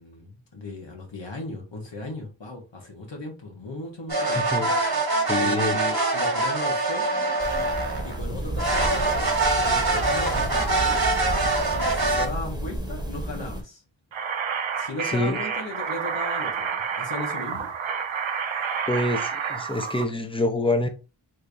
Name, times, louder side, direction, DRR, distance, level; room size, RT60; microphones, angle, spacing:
voice 1, 0.0-4.4 5.1-7.1 8.0-11.0 11.7-13.8 14.7-17.7, left 2 dB, 70° left, 1.1 m, -36 dB
sound 1, 4.1-8.2 8.6-12.3, right 2 dB, 50° right, 1.2 m, -24 dB
voice 2, 5.2-5.8 15.1-15.4 18.9-20.9, left 2 dB, 10° left, 0.6 m, -26 dB
sound 2, 7.4-13.6, right 1 dB, 10° right, 1.0 m, -32 dB
sound 3, 14.1-20.0, right 6 dB, 85° right, 0.6 m, -29 dB
3.3 x 3.3 x 2.6 m
wide cardioid pair, 45°, 46 cm